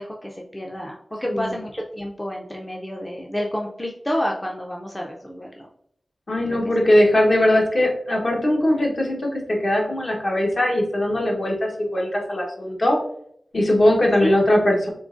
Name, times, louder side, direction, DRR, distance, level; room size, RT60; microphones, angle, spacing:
voice 1, 0.0-5.7 6.5-6.6 7.0-7.1 14.2-14.4, equal, 15° left, 0 dB, 0.5 m, -29 dB
voice 2, 6.3-13.0 13.5-14.9, left 1 dB, 50° left, -1 dB, 1.0 m, -20 dB
3.7 x 3.6 x 2.4 m, 0.69 s
wide cardioid pair, 75°, 0 cm